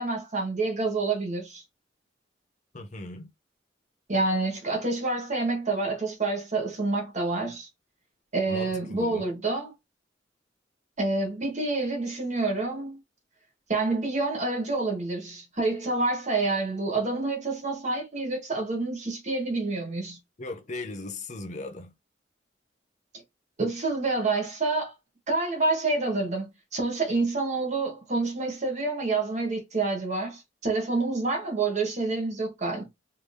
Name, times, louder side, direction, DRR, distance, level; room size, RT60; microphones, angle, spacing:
voice 1, 0.0-1.6 4.1-7.7 8.3-9.7 11.0-13.0 13.7-20.2 23.6-24.9 25.3-32.9, right 3 dB, 40° right, 1.5 m, -28 dB
voice 2, 2.7-3.3 8.5-9.3 20.4-21.9, left 2 dB, 40° left, 0.7 m, -38 dB
3.3 x 2.9 x 3.4 m
head